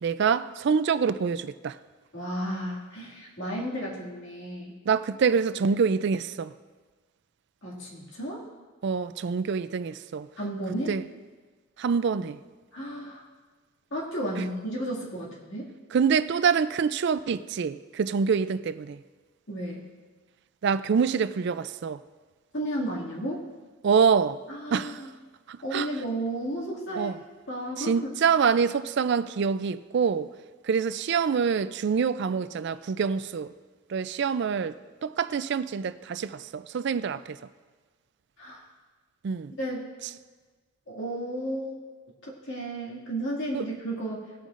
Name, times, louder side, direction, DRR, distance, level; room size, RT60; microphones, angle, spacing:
voice 1, 0.0-1.8 4.9-6.5 8.8-10.3 10.9-11.0 11.8-12.4 15.9-19.0 20.6-22.0 23.8-24.4 24.7-25.0 25.5-25.9 27.0-27.2 27.8-30.3 30.6-33.5 33.9-34.8 35.0-37.4 39.2-39.5 43.5-43.6, right 6 dB, 55° right, 0.3 m, -26 dB
voice 2, 2.1-4.7 7.6-8.4 10.4-11.0 12.7-13.2 13.9-15.7 19.5-19.9 22.5-23.5 24.5-25.1 25.6-27.1 27.5-28.0 38.4-38.6 39.6-39.8 40.9-41.8 42.2-44.5, right 1 dB, 60° left, 2.1 m, -33 dB
18.5 x 9.0 x 2.5 m
head